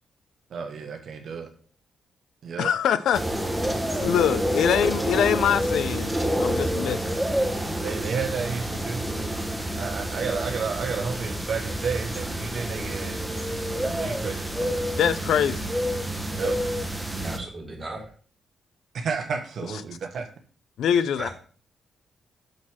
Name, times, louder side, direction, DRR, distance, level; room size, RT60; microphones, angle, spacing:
voice 1, 0.5-1.5 2.4-2.7 7.8-9.0 9.7-13.2 13.7-14.8 16.3-16.6 17.1-17.4 18.9-20.3, right 5 dB, 65° right, 1.1 m, -31 dB
voice 2, 2.6-3.2 3.9-7.1 15.0-15.7 20.8-21.3, left 9 dB, 80° left, 0.5 m, -24 dB
sound 1, 3.1-17.4, equal, 5° right, 1.0 m, -28 dB
voice 3, 17.2-18.1 21.2-21.3, right 2 dB, 30° right, 3.1 m, -36 dB
6.4 x 4.3 x 6.1 m
cardioid pair, 100°, 0 cm